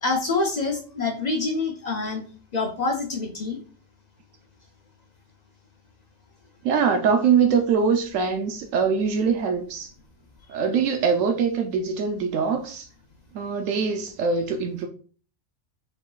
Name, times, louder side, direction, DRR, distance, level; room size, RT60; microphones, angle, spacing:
voice 1, 0.0-2.3 2.5-3.6, left 3 dB, 45° left, 0.6 m, -26 dB
voice 2, 6.6-9.9 10.5-12.9 13.3-14.9, right 6 dB, 85° right, 1.0 m, -23 dB
4.9 x 3.8 x 2.4 m
omnidirectional pair, 1.3 m